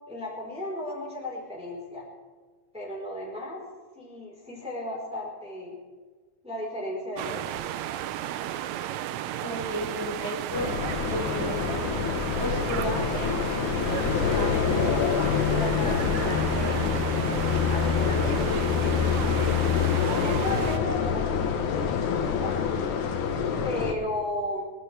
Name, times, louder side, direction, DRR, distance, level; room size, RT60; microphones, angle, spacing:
voice 1, 0.1-2.1 2.7-3.7 4.0-5.8 6.4-7.8 19.9-22.6 23.6-24.6, left 1 dB, ahead, -3 dB, 3.7 m, -34 dB
sound 1, 7.2-20.8, right 12 dB, 80° right, 1.8 m, -34 dB
voice 2, 9.4-10.7 11.0-11.7 12.4-13.4 13.9-17.4 17.7-18.3, equal, 75° left, -5 dB, 7.0 m, -35 dB
sound 2, 10.5-23.9, left 6 dB, 90° left, 2.5 m, -26 dB
23.5 x 13.0 x 3.3 m, 1.4 s
omnidirectional pair, 3.4 m